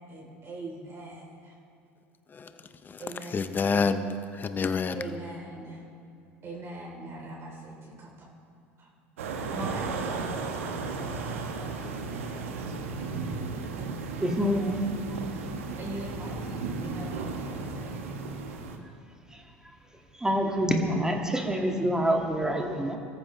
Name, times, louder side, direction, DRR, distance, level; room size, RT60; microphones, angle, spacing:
voice 1, 0.0-1.6 3.0-3.4 5.0-5.9 6.4-8.3 8.8-8.9 9.5-10.4 15.8-18.0, right 1 dB, 35° right, 3.6 m, -41 dB
voice 2, 3.3-5.0, left 4 dB, 25° left, 0.9 m, -28 dB
sound 1, 9.2-18.8, right 4 dB, 80° right, 1.3 m, -34 dB
voice 3, 14.2-14.8 15.1-15.2 19.3-19.4 20.1-23.0, equal, 10° right, 2.1 m, -27 dB
23.0 x 14.0 x 3.3 m
hypercardioid pair, 80°, 7 cm